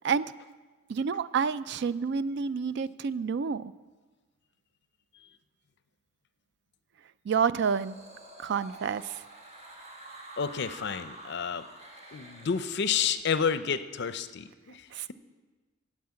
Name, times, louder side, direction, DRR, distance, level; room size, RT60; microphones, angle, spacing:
voice 1, 0.9-3.7 7.3-8.0 8.4-9.2 14.9-15.1, right 6 dB, 55° right, 16 dB, 0.4 m, -29 dB
sound 1, 7.6-13.2, right 1 dB, 35° right, 1.4 m, -48 dB
voice 2, 10.4-11.6 12.1-15.1, left 6 dB, 55° left, 12 dB, 0.5 m, -30 dB
9.5 x 7.6 x 8.8 m, 1.3 s
head